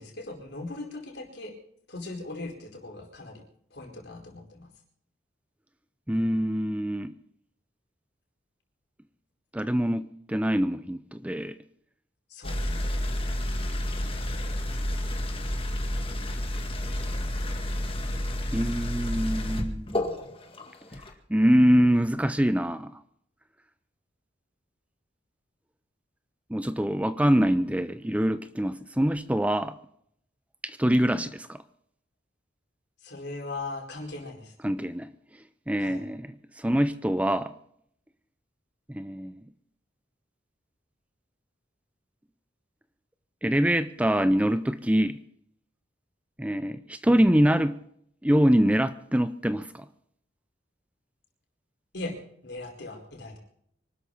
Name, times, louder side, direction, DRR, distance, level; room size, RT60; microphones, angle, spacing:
voice 1, 0.0-1.5 1.9-3.4 3.7-4.7 12.3-12.6 33.0-34.5 35.8-36.1 51.9-52.2 52.4-53.4, left 2 dB, 65° left, 4.5 m, -39 dB
voice 2, 6.1-7.2 9.5-11.6 18.5-20.0 21.3-23.0 26.5-29.8 30.6-31.6 34.6-35.1 35.7-37.5 38.9-39.4 43.4-45.2 46.4-47.8 48.2-49.9, equal, 5° right, 0.5 m, -24 dB
sound 1, 12.4-21.1, left 1 dB, 30° left, 2.0 m, -30 dB
25.0 x 12.5 x 4.1 m
head